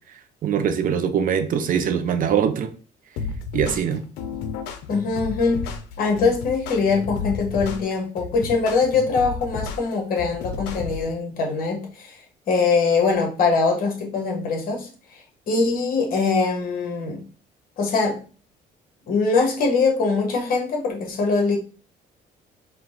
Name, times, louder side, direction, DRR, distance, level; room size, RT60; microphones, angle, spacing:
voice 1, 0.4-2.7 3.5-4.0, right 8 dB, 55° right, 9 dB, 0.6 m, -22 dB
sound 1, 3.2-11.1, left 5 dB, 90° left, 0.6 m, -32 dB
voice 2, 4.9-12.2 12.5-15.2 15.5-17.2 17.8-18.2 19.1-21.6, left 4 dB, 60° left, 1 dB, 1.6 m, -22 dB
4.5 x 2.3 x 3.9 m, 0.37 s
cardioid pair, 110°, 17 cm